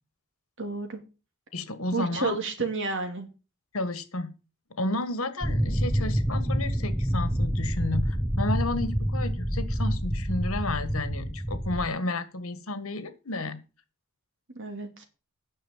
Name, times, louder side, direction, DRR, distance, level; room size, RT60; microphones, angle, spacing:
voice 1, 0.6-1.0 1.9-3.3 14.5-15.1, right 3 dB, 60° right, 5 dB, 2.7 m, -31 dB
voice 2, 1.5-2.4 3.7-4.3 4.8-13.6, left 2 dB, 70° left, 12 dB, 1.6 m, -32 dB
sound 1, 5.4-11.9, equal, ahead, 0.6 m, -27 dB
9.9 x 6.6 x 7.3 m, 0.32 s
head